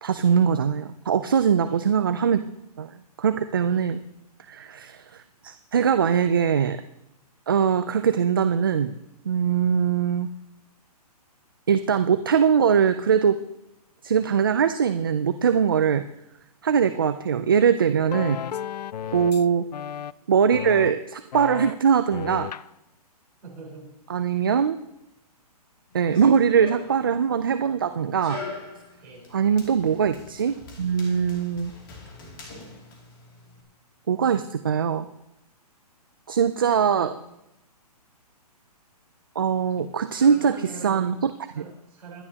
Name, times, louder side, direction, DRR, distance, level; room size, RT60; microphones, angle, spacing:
voice 1, 0.0-2.4 2.8-4.0 4.5-6.8 7.5-9.0 9.3-10.3 11.7-13.4 14.0-16.0 16.6-18.4 19.1-19.6 20.3-22.5 24.1-24.8 25.9-28.4 29.3-31.7 34.1-35.1 36.3-37.1 39.4-40.6 40.8-41.3, right 7 dB, 35° right, 10 dB, 0.4 m, -22 dB
sound 1, 17.9-19.5 19.7-20.1 20.5-20.9 21.3-21.7 22.1-22.7, left 9 dB, 80° left, 0.4 m, -33 dB
voice 2, 23.4-23.9 29.0-29.3 36.9-37.2 39.9-42.2, right 3 dB, 10° right, -7 dB, 4.3 m, -43 dB
Run, 25.9-33.6, left 3 dB, 30° left, 2.6 m, -43 dB
21.5 x 11.0 x 2.9 m, 0.87 s
hypercardioid pair, 180°, 20 cm